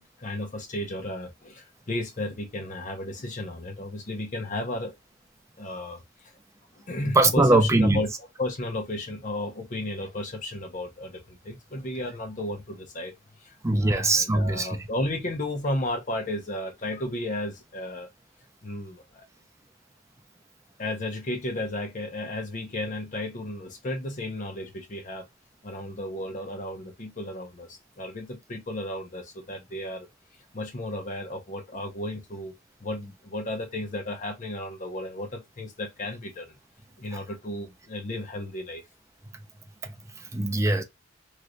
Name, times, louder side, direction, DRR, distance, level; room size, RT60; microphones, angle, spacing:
voice 1, 0.0-4.9 5.6-6.0 6.8-8.1 8.4-13.1 13.4-13.5 13.8-18.1 18.6-19.3 20.8-25.3 25.6-30.1 30.5-32.5 32.8-36.6 37.0-38.8, left 1 dB, 40° left, 0.8 m, -33 dB
voice 2, 7.1-8.0 13.6-14.8 37.1-37.2 39.8-40.8, right 2 dB, 15° right, 0.5 m, -22 dB
3.2 x 2.9 x 2.5 m
head